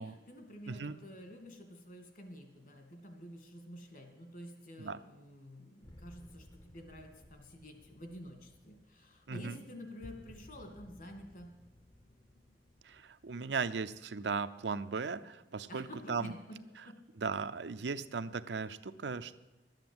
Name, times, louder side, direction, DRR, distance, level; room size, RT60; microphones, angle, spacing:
voice 1, 0.0-11.5 15.7-17.0, equal, 50° left, 5 dB, 2.1 m, -50 dB
sound 1, 5.8-14.7, left 1 dB, 25° left, 0.7 m, -58 dB
voice 2, 9.3-9.6 12.8-16.3 17.2-19.4, right 5 dB, 80° right, 12 dB, 0.6 m, -37 dB
12.0 x 9.0 x 7.8 m, 1.0 s
head